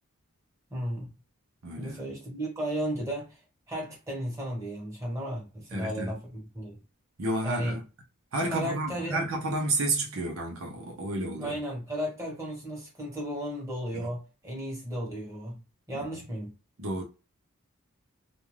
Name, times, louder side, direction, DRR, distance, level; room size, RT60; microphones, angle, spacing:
voice 1, 0.7-1.1 1.8-3.4 3.7-6.8 7.4-7.8 8.5-9.2 11.4-15.6 15.9-16.5, equal, 15° right, 1.2 m, -34 dB
voice 2, 1.6-2.1 5.7-6.1 7.2-7.8 8.3-11.6 13.9-14.1 15.9-16.0 16.8-17.0, right 2 dB, 75° right, 0.7 m, -31 dB
2.5 x 2.2 x 3.2 m
head